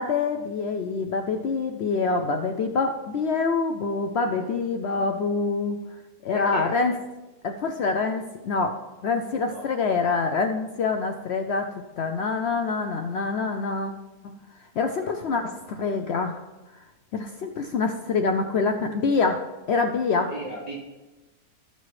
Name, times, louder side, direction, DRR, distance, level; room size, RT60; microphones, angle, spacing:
voice 1, 0.0-5.8 6.2-6.9 7.4-11.7 12.0-13.9 14.2-14.4 14.8-16.4 17.1-19.4 19.7-20.3, left 4 dB, 90° left, 5 dB, 0.5 m, -26 dB
voice 2, 4.2-4.6 6.3-6.8 9.4-9.6 15.0-15.6 20.3-20.7, right 1 dB, 25° left, -5 dB, 2.5 m, -38 dB
13.0 x 6.7 x 3.1 m, 1.1 s
omnidirectional pair, 1.8 m